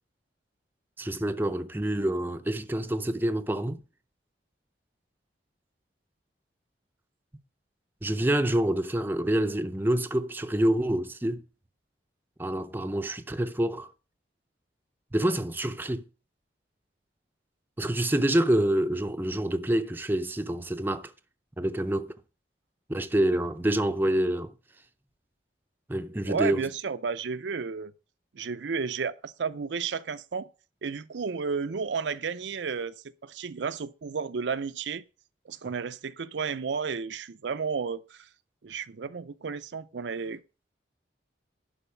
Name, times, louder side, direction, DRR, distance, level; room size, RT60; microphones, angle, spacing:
voice 1, 1.0-3.8 8.0-11.4 12.4-13.9 15.1-16.0 17.8-21.1 21.6-22.2 22.9-24.5 25.9-26.6, right 1 dB, 10° right, 0.5 m, -27 dB
voice 2, 26.3-27.9 28.3-30.5 30.8-32.9 33.2-35.0 35.5-38.3 38.6-40.4, right 5 dB, 75° right, 0.5 m, -32 dB
11.0 x 4.0 x 7.1 m
head